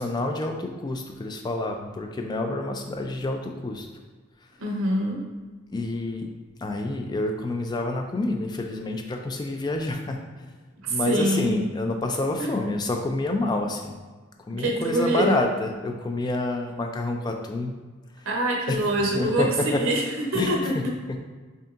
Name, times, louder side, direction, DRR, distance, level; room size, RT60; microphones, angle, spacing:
voice 1, 0.0-3.9 5.7-6.3 6.6-10.5 10.9-14.0 14.5-17.7 18.7-18.8 19.1-19.8 20.3-20.8 21.1-21.2, left 2 dB, 20° left, 3 dB, 0.3 m, -28 dB
voice 2, 4.6-5.2 10.8-11.5 12.4-12.5 14.5-15.4 18.3-20.7, right 1 dB, 85° right, 0 dB, 0.8 m, -25 dB
5.2 x 2.7 x 2.4 m, 1.4 s
head